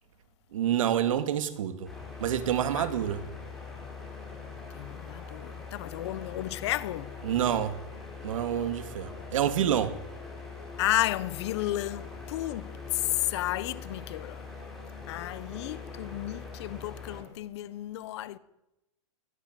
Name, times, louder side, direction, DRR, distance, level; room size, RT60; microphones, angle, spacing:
voice 1, 0.5-1.9 2.2-3.2 7.2-7.7 8.2-9.9, right 10 dB, 75° right, 2.5 m, -27 dB
sound 1, 1.8-17.2, left 4 dB, ahead, 8.0 m, -42 dB
voice 2, 4.7-7.1 10.8-12.7 13.3-14.4 15.1-18.4, left 15 dB, 55° left, 1.2 m, -33 dB
22.5 x 18.0 x 9.4 m
supercardioid pair, 155°, 17 cm